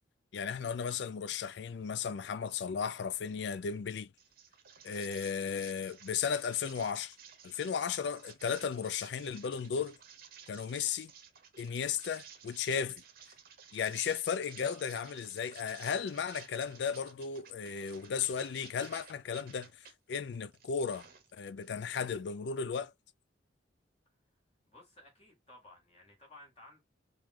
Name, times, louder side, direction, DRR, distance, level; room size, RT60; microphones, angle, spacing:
voice 1, 0.3-4.1 4.8-7.2 7.4-10.0 10.5-11.1 11.6-13.0 13.7-21.1 21.3-22.9, left 6 dB, 60° left, 0.4 m, -35 dB
sound 1, 4.2-19.9 20.4-21.7, right 7 dB, 50° right, 0.8 m, -55 dB
voice 2, 24.7-26.8, left 1 dB, 30° left, 1.8 m, -56 dB
4.5 x 2.5 x 3.6 m
head